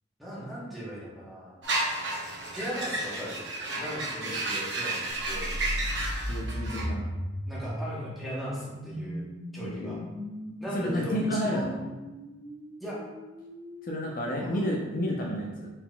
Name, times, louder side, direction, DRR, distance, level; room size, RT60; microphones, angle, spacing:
voice 1, 0.2-1.6 2.5-3.4 3.8-5.5 7.5-9.2 9.5-10.0 10.6-11.7 12.8-13.0 14.4-14.6, equal, ahead, -7 dB, 1.0 m, -38 dB
sound 1, 1.6-6.9, right 2 dB, 75° right, 0.8 m, -32 dB
sound 2, 5.3-15.1, equal, 60° right, 1.5 m, -38 dB
voice 2, 6.3-7.0 9.6-10.1 10.7-11.9 13.8-15.7, equal, 50° left, -2 dB, 0.5 m, -31 dB
4.0 x 3.9 x 2.2 m, 1.2 s
head